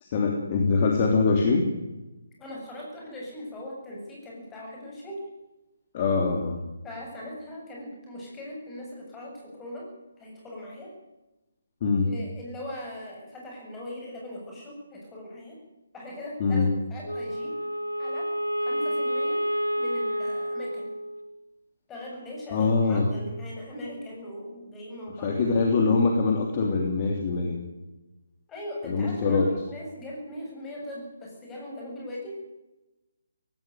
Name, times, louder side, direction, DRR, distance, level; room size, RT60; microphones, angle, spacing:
voice 1, 0.0-1.6 5.9-6.6 11.8-12.1 16.4-16.7 22.5-23.1 25.2-27.6 28.8-29.5, left 4 dB, 30° left, 2 dB, 3.1 m, -23 dB
voice 2, 2.4-5.2 6.8-9.9 10.2-10.9 12.0-15.6 15.9-17.5 18.0-18.3 18.6-19.4 19.8-20.9 21.9-25.4 28.5-32.4, left 1 dB, 10° left, -2 dB, 7.7 m, -40 dB
Wind instrument woodwind instrument, 17.0-21.5, equal, 85° left, 2.1 m, -29 dB
18.0 x 17.0 x 9.5 m, 1.0 s
figure-of-eight pair, 145°, 0 cm